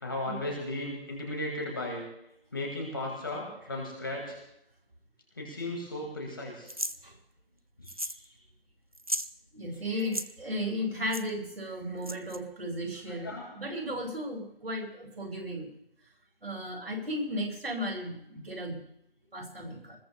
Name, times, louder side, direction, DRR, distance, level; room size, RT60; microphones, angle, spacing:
voice 1, 0.0-2.0 2.5-4.4 5.4-6.7 7.8-8.3 9.9-10.1 12.8-13.5, left 1 dB, 20° left, -1 dB, 2.1 m, -36 dB
sound 1, 6.7-7.0 7.9-8.2 8.5-8.6 8.9-9.3 10.0-10.3 11.1-11.2 12.0-12.4, equal, 35° right, 0.5 m, -34 dB
voice 2, 9.5-15.7 16.4-18.8 19.3-20.0, equal, 75° right, 0 dB, 5.8 m, -35 dB
26.0 x 20.5 x 2.3 m, 0.77 s
figure-of-eight pair, 170°, 30 cm